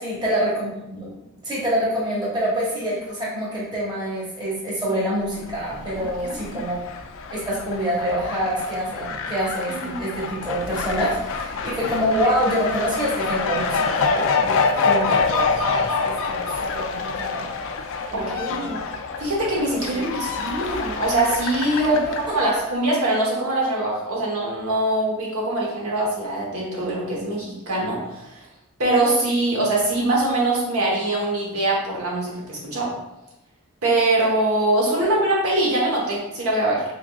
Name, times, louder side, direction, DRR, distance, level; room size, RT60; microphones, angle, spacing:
voice 1, 0.0-1.1 1.4-6.8 7.3-17.4 18.1-18.8 19.7-20.1 21.8-22.5 35.0-35.2, equal, 20° right, -6 dB, 1.0 m, -26 dB
Fowl, 5.4-22.7, left 4 dB, 60° left, 0.4 m, -26 dB
voice 2, 6.2-6.6 9.7-10.0 18.1-18.8 19.2-22.0 22.3-28.4 28.8-32.9 33.8-36.8, right 2 dB, 75° right, -4 dB, 1.0 m, -23 dB
3.6 x 3.5 x 2.3 m, 0.94 s
head